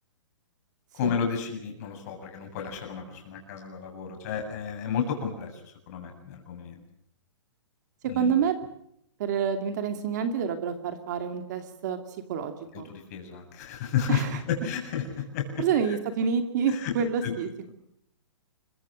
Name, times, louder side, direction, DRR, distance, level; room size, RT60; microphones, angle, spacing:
voice 1, 0.9-6.8 8.1-8.3 12.7-15.9 16.7-16.9 17.2-17.3, left 7 dB, 30° left, 3 dB, 7.6 m, -32 dB
voice 2, 8.1-8.6 9.2-12.9 14.1-14.3 15.6-17.7, right 7 dB, 35° right, 7 dB, 2.5 m, -28 dB
29.0 x 24.0 x 6.4 m, 0.74 s
hypercardioid pair, 170°, 16 cm